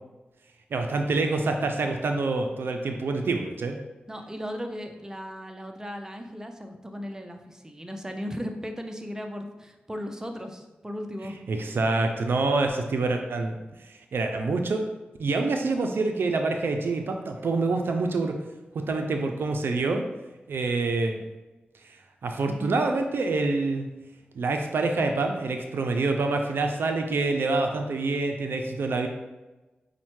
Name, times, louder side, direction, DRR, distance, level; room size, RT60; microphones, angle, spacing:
voice 1, 0.7-3.8 11.5-13.6 13.8-14.9 15.2-18.4 18.7-20.0 20.5-21.2 22.2-23.9 24.4-29.1, right 3 dB, 75° right, 4 dB, 0.3 m, -26 dB
voice 2, 4.1-11.4 22.4-22.8, equal, 15° right, 5 dB, 0.5 m, -36 dB
5.2 x 2.1 x 3.0 m, 1.1 s
cardioid pair, 45°, 4 cm